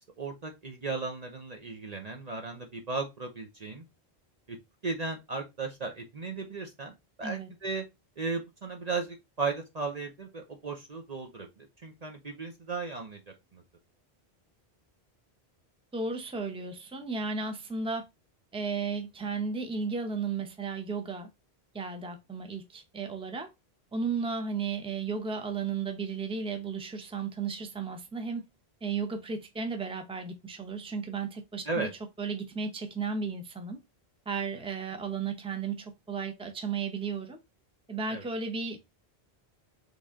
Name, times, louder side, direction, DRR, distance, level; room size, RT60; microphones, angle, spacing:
voice 1, 0.2-3.8 4.5-4.6 4.8-7.8 8.2-13.2 13.5-13.6 31.7-31.9 38.1-38.3, right 4 dB, 40° right, 0.8 m, -36 dB
voice 2, 15.9-18.0 18.5-21.3 21.7-23.5 23.9-28.4 28.8-31.9 32.2-33.8 34.3-37.4 37.9-38.8, right 5 dB, 5° right, 0.7 m, -34 dB
4.0 x 3.4 x 3.6 m
omnidirectional pair, 1.1 m